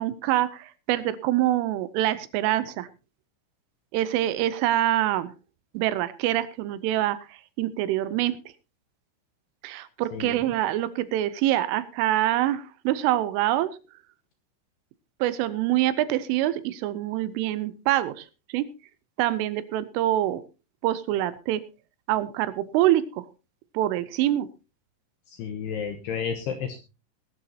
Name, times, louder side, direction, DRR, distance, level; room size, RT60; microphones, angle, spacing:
voice 1, 0.0-2.9 3.9-5.3 5.7-8.4 9.6-13.8 15.2-18.3 18.5-18.7 19.2-20.4 20.8-21.6 22.1-23.3 23.7-24.5, right 14 dB, 80° right, 15 dB, 3.2 m, -25 dB
voice 2, 10.1-10.4 25.3-26.8, left 7 dB, 75° left, 6 dB, 2.5 m, -32 dB
20.5 x 12.0 x 2.8 m, 0.30 s
omnidirectional pair, 5.9 m